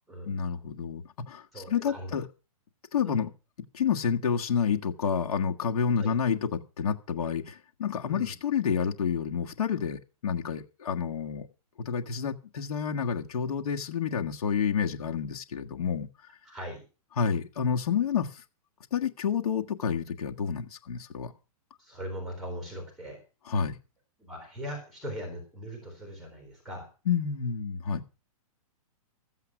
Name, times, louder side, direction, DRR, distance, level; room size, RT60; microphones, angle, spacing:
voice 1, 0.2-2.3 2.9-3.3 3.7-11.5 11.9-16.1 17.2-18.4 18.9-21.3 23.5-23.8 27.1-28.0, left 7 dB, 75° left, 1.7 m, -29 dB
voice 2, 1.5-2.1 3.0-3.2 6.0-6.1 8.1-8.3 16.5-16.8 21.8-23.2 24.2-26.9, equal, ahead, 3.7 m, -40 dB
14.5 x 8.1 x 6.0 m
hypercardioid pair, 170°, 19 cm